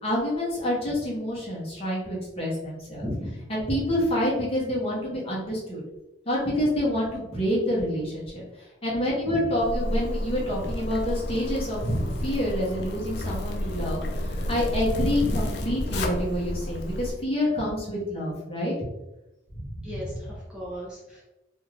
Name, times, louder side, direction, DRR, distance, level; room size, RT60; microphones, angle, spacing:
voice 1, 0.0-3.1 3.5-5.8 6.3-8.4 8.8-14.0 14.2-18.7 19.5-19.9, left 1 dB, 30° left, -5 dB, 0.9 m, -27 dB
voice 2, 3.0-3.3 9.2-9.5 12.2-12.3 15.2-15.5 19.8-21.2, equal, 5° right, -7 dB, 0.5 m, -34 dB
Zipper (clothing), 9.6-17.1, left 1 dB, 60° left, 0.4 m, -31 dB
2.7 x 2.4 x 3.2 m, 0.96 s
head